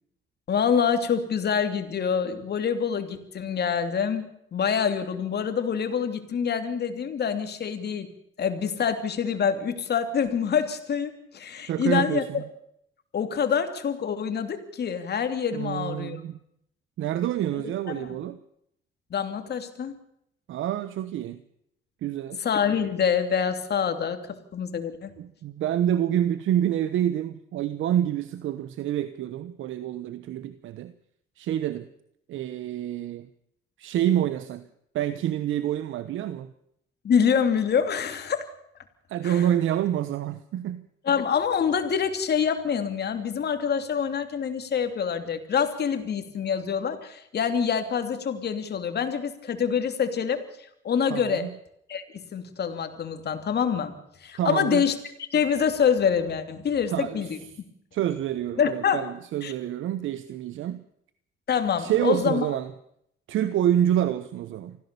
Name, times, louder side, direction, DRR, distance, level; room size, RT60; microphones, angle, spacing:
voice 1, 0.5-4.2 4.5-8.1 8.4-12.4 13.1-16.2 17.6-18.1 19.1-20.0 22.4-24.2 24.5-25.1 37.0-38.5 39.2-39.4 41.0-50.4 50.8-51.5 51.9-53.9 54.2-54.9 55.3-57.4 58.6-59.1 59.4-59.5 61.5-62.5, left 7 dB, 55° left, 8 dB, 2.9 m, -26 dB
voice 2, 11.6-12.4 15.5-16.4 17.0-18.4 20.5-21.4 22.0-22.4 25.2-30.9 31.4-31.9 32.3-33.3 33.8-34.6 34.9-36.5 39.1-40.9 51.1-51.5 54.4-54.9 56.9-57.2 57.9-60.8 61.8-62.7 63.3-64.8, right 11 dB, 80° right, 13 dB, 1.1 m, -27 dB
24.5 x 15.5 x 6.9 m, 0.73 s
cardioid pair, 90°, 20 cm